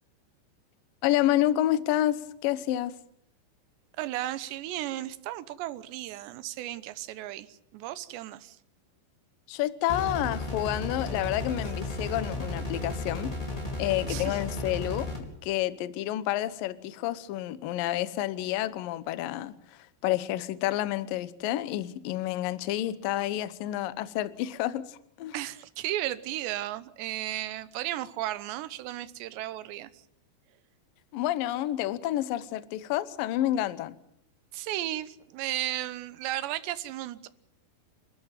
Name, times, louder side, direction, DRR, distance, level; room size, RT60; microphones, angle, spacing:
voice 1, 1.0-2.9 9.5-13.3 13.8-15.1 15.4-19.5 20.0-25.4 31.1-33.9, left 13 dB, 70° left, 15 dB, 2.2 m, -29 dB
voice 2, 4.0-8.6 14.1-14.4 25.3-30.0 34.5-37.3, right 14 dB, 80° right, 14 dB, 3.1 m, -34 dB
sound 1, 9.9-15.2, left 2 dB, 10° left, 4.4 m, -34 dB
28.0 x 13.0 x 9.1 m, 0.73 s
omnidirectional pair, 5.2 m